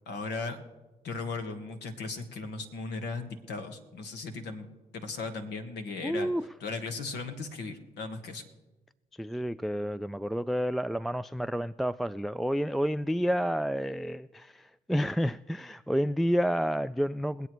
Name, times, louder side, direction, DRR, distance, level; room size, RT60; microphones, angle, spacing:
voice 1, 0.1-0.6 1.0-4.7 4.9-6.3 6.6-8.4, left 3 dB, 75° left, 1.3 m, -37 dB
voice 2, 6.0-6.4 9.2-17.5, equal, ahead, 0.3 m, -30 dB
23.0 x 8.2 x 3.1 m
hypercardioid pair, 45°, 18 cm